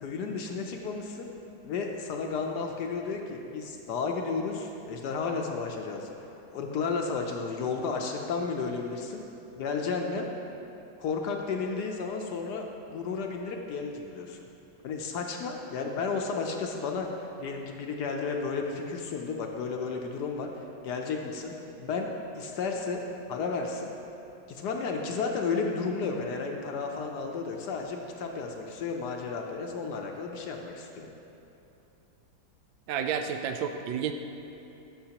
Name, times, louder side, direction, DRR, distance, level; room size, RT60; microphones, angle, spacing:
voice 1, 0.0-1.3 1.6-6.1 6.5-9.2 9.5-10.3 11.0-14.4 14.8-17.1 17.4-20.5 20.8-23.9 24.5-31.1, left 4 dB, 70° left, 2 dB, 1.1 m, -33 dB
voice 2, 32.9-34.1, right 7 dB, 80° right, 6 dB, 1.3 m, -30 dB
13.0 x 6.2 x 2.9 m, 2.9 s
omnidirectional pair, 2.0 m